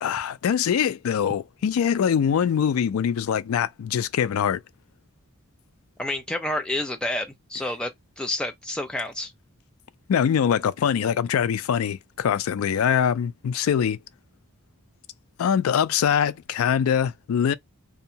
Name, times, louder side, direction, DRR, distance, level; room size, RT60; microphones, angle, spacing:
voice 1, 0.0-4.6 10.1-14.0 15.4-17.5, left 8 dB, 80° left, 0.3 m, -23 dB
voice 2, 6.0-7.9 8.2-9.3, left 1 dB, 5° left, 0.5 m, -29 dB
2.6 x 2.2 x 2.7 m
head